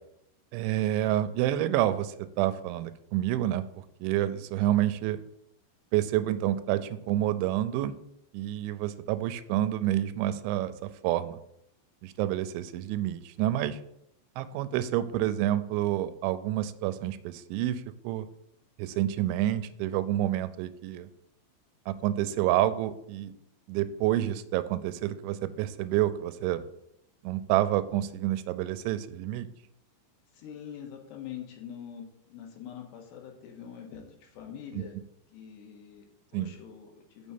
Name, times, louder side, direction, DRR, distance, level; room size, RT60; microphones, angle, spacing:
voice 1, 0.5-5.2 5.9-7.9 8.3-11.4 12.0-13.8 14.4-18.3 18.8-21.1 21.9-23.3 23.7-26.6 27.2-29.5 34.7-34.8 36.3-36.5, right 13 dB, 85° right, 13 dB, 3.0 m, -28 dB
voice 2, 30.3-35.0 35.3-37.3, left 8 dB, 70° left, 2 dB, 3.2 m, -44 dB
6.9 x 6.4 x 7.0 m, 0.75 s
omnidirectional pair, 5.3 m